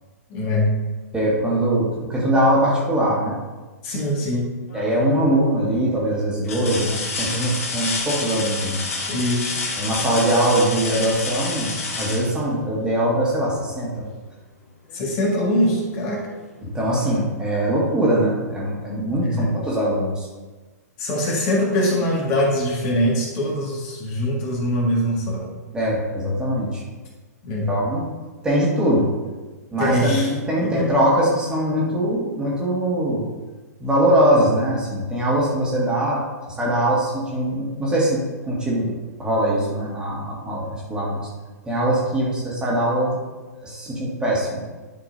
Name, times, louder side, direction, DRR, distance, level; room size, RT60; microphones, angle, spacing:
voice 1, 0.3-0.7 3.8-4.5 9.1-9.6 14.9-16.2 19.0-19.5 21.0-25.5 27.4-27.7 29.8-30.3 30.6-30.9, left 1 dB, 30° left, -3 dB, 1.9 m, -22 dB
voice 2, 1.1-3.4 4.7-8.8 9.8-14.1 16.6-20.3 25.7-26.8 27.7-28.0 28.4-29.1 29.7-33.2 33.8-36.2 36.6-41.3 41.6-43.2 43.6-44.6, right 1 dB, 10° right, -5 dB, 1.9 m, -22 dB
sound 1, 4.7-5.2 5.7-5.8 6.4-13.1 14.9-15.0 15.5-16.5 17.8-17.9, left 3 dB, 55° left, 1.6 m, -29 dB
11.5 x 5.8 x 2.7 m, 1.3 s
figure-of-eight pair, 110°, 9 cm